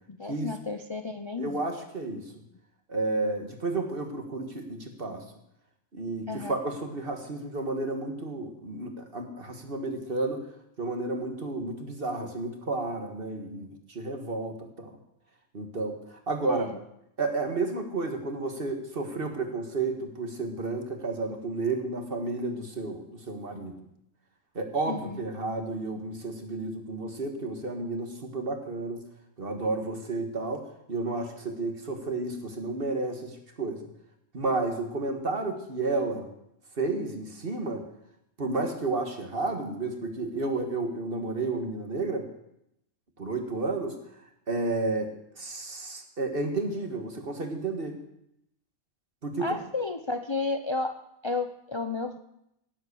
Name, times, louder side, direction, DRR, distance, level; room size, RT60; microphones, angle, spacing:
voice 1, 0.1-1.7 6.3-6.6 16.5-16.8 24.9-25.2 49.4-52.2, left 3 dB, 30° left, 7 dB, 0.6 m, -32 dB
voice 2, 1.4-2.2 2.9-5.2 5.9-10.4 10.8-15.0 15.5-16.7 17.2-23.7 24.6-29.0 29.4-30.6 30.9-33.9 34.3-36.3 36.8-37.8 38.4-42.3 43.2-44.0 44.5-45.1 45.4-48.0 49.2-49.5, right 3 dB, 50° right, 5 dB, 2.0 m, -31 dB
17.0 x 7.9 x 7.0 m, 0.80 s
omnidirectional pair, 1.3 m